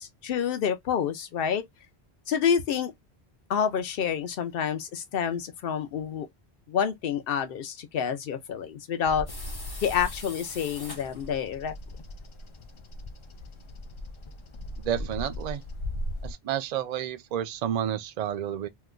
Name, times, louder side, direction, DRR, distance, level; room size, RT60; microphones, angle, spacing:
voice 1, 0.0-1.7 2.3-2.9 3.5-6.3 6.7-9.3 9.8-11.7, left 7 dB, 65° left, 0.8 m, -28 dB
Bird vocalization bird call bird song, 9.1-16.3, left 1 dB, 50° left, 0.3 m, -38 dB
sound 1, 9.3-11.4, left 2 dB, 25° left, 0.8 m, -43 dB
voice 2, 14.8-15.6 16.2-18.7, right 10 dB, 55° right, 0.5 m, -30 dB
2.8 x 2.2 x 3.5 m
omnidirectional pair, 1.1 m